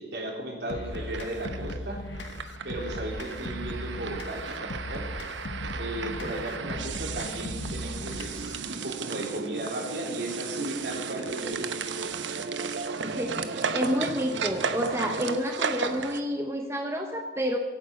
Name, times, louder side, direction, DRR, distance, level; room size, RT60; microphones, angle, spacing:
voice 1, 0.0-2.0 2.6-5.1 5.8-12.5, right 1 dB, 65° right, 0 dB, 3.6 m, -36 dB
sound 1, 0.7-8.7, left 1 dB, 75° left, 1.0 m, -38 dB
sound 2, 0.9-16.2, right 5 dB, 85° right, 1.0 m, -35 dB
sound 3, 6.1-15.4, right 3 dB, 50° right, 0.5 m, -39 dB
voice 2, 13.0-17.6, equal, 15° right, 3 dB, 1.0 m, -29 dB
24.5 x 9.3 x 5.4 m, 1.4 s
head